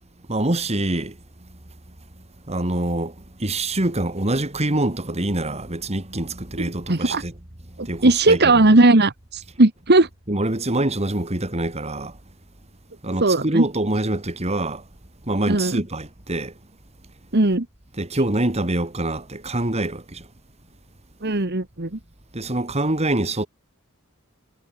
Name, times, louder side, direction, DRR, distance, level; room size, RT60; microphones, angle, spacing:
voice 1, 0.3-1.2 2.5-7.3 7.8-8.6 10.3-12.2 13.0-14.8 15.3-16.5 17.9-20.3 22.3-23.5, right 1 dB, 30° right, 2.5 m, -25 dB
voice 2, 6.9-7.2 7.8-10.1 13.2-13.6 15.5-15.8 17.3-17.7 21.2-22.0, right 2 dB, 50° right, 1.8 m, -17 dB
head